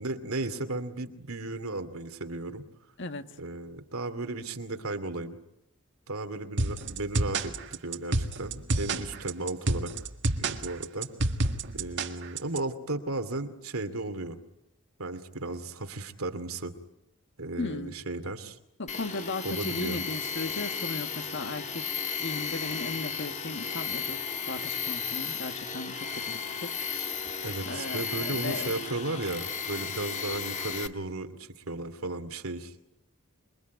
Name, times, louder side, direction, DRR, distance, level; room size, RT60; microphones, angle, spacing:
voice 1, 0.0-2.6 3.4-5.4 6.1-9.9 10.4-11.1 11.7-14.4 15.0-16.8 17.4-18.6 19.4-20.0 27.4-32.8, right 2 dB, 85° right, 8 dB, 2.6 m, -35 dB
sound 1, 6.6-12.6, right 2 dB, 60° right, 1.7 m, -29 dB
voice 2, 17.6-17.9 18.8-26.7 27.6-28.8, left 2 dB, 60° left, 8 dB, 1.7 m, -37 dB
Tools, 18.9-30.9, left 6 dB, 35° left, 1.7 m, -34 dB
27.5 x 22.5 x 9.4 m, 0.83 s
head